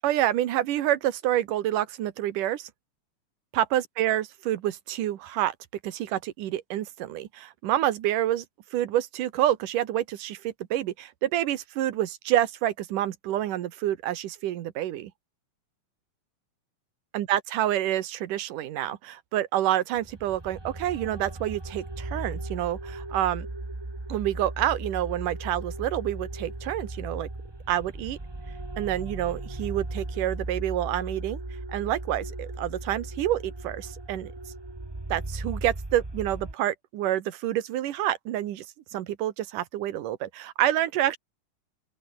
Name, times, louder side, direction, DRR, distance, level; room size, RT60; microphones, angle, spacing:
voice 1, 0.0-2.7 3.5-5.6 5.8-8.5 8.7-15.1 17.1-23.5 24.1-27.3 27.7-28.2 28.8-31.4 31.7-34.3 35.1-38.7 38.9-41.2, right 13 dB, 80° right, 2.9 m, -28 dB
sound 1, 19.9-36.5, right 2 dB, 15° right, 0.8 m, -37 dB
open air
omnidirectional pair, 3.6 m